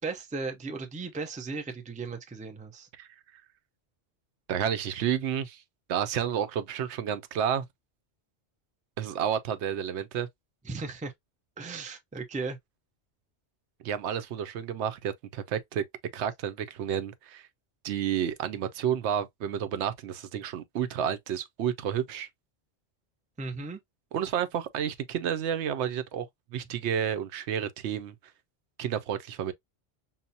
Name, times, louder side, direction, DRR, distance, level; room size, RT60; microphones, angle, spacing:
voice 1, 0.0-2.9 10.6-11.1 11.6-12.6 23.4-23.8, right 4 dB, 10° right, 0.4 m, -36 dB
voice 2, 4.5-5.6 5.9-7.6 9.0-10.3 13.8-15.8 16.1-17.5 17.8-22.3 24.1-26.3 26.5-28.1 28.8-29.5, right 9 dB, 85° right, 0.9 m, -30 dB
5.7 x 2.0 x 2.6 m
omnidirectional pair, 1.1 m